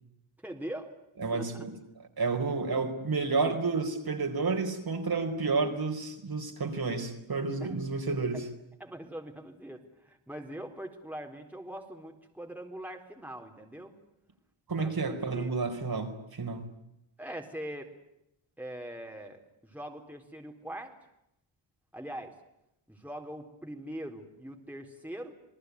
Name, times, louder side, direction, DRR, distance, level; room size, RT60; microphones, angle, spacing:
voice 1, 0.4-0.9 1.3-1.7 7.6-7.8 8.3-8.4 8.8-13.9 14.8-15.5 17.2-17.9 18.6-20.9 21.9-22.4 22.9-25.3, right 1 dB, 5° right, 2 dB, 4.0 m, -42 dB
voice 2, 1.2-1.7 2.2-8.5 14.7-16.7, right 4 dB, 45° right, 4 dB, 4.5 m, -30 dB
28.5 x 19.5 x 9.6 m, 0.82 s
cardioid pair, 80°, 49 cm